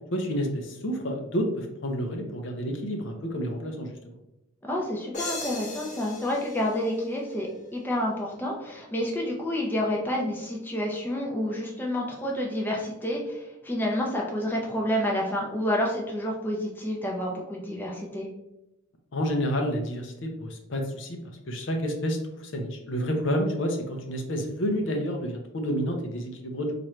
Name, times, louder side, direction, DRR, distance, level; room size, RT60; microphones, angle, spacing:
voice 1, 0.1-3.9 19.1-26.7, equal, 60° left, 3 dB, 0.5 m, -29 dB
voice 2, 4.7-18.3, left 1 dB, 10° left, -2 dB, 0.5 m, -29 dB
sound 1, 5.1-7.8, left 2 dB, 35° left, 0.8 m, -39 dB
3.1 x 2.5 x 4.2 m, 0.89 s
head